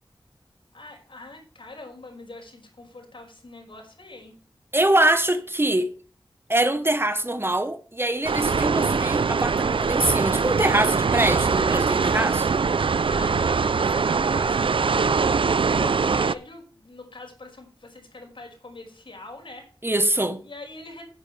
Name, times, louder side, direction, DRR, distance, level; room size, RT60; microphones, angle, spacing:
voice 1, 0.7-4.3 13.1-14.8 15.1-19.7 20.4-21.0, left 2 dB, 75° left, 5.5 m, -43 dB
voice 2, 4.7-5.9 6.5-12.5 19.8-20.4, right 1 dB, 25° right, 1.1 m, -23 dB
sound 1, 8.2-16.3, right 5 dB, 75° right, 0.5 m, -22 dB
15.0 x 9.3 x 3.4 m
wide cardioid pair, 70°, 9 cm